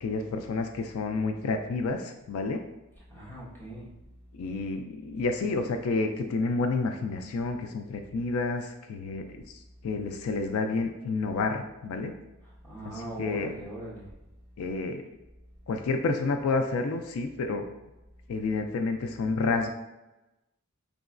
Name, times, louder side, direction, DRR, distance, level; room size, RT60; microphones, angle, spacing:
voice 1, 0.0-2.6 4.3-12.1 12.9-13.5 14.6-15.1 15.7-17.7 18.3-19.7, left 3 dB, 75° left, 6 dB, 0.3 m, -30 dB
voice 2, 3.1-3.9 12.6-14.1, right 1 dB, 10° left, -8 dB, 1.2 m, -40 dB
5.0 x 3.0 x 2.4 m, 1.0 s
head